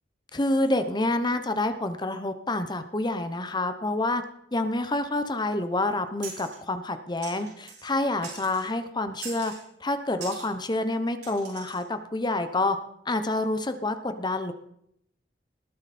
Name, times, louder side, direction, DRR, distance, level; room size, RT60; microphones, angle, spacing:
voice 1, 0.3-4.2 4.5-9.5 9.8-12.8 13.1-14.5, left 2 dB, 25° left, 9 dB, 0.9 m, -28 dB
sound 1, 6.2-6.6 7.2-7.9 8.2-8.7 9.2-9.6 10.2-10.5 11.2-11.8, right 5 dB, 70° right, 4.9 m, -42 dB
19.5 x 8.8 x 4.3 m, 0.73 s
head